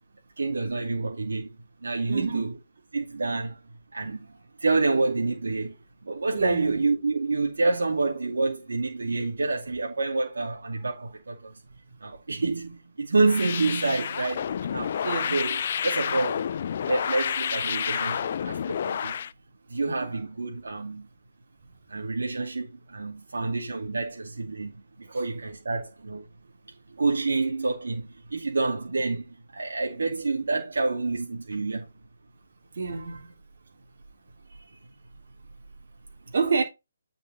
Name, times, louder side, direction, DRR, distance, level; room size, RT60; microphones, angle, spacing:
voice 1, 0.4-1.6 1.8-2.5 2.9-3.6 3.9-5.7 6.0-11.5 12.0-15.0 15.3-16.5 16.8-19.3 19.7-21.1 21.9-26.3 26.9-31.9 34.7-34.8, right 3 dB, 85° right, 2.5 m, -28 dB
voice 2, 2.1-2.5 4.0-4.1 6.3-6.8 15.0-15.4 25.1-25.2 32.7-33.3 36.3-36.6, right 4 dB, 60° right, 3.2 m, -28 dB
sound 1, 13.2-19.3, left 8 dB, 45° left, 0.4 m, -29 dB
9.4 x 5.5 x 4.0 m
hypercardioid pair, 160°, 0 cm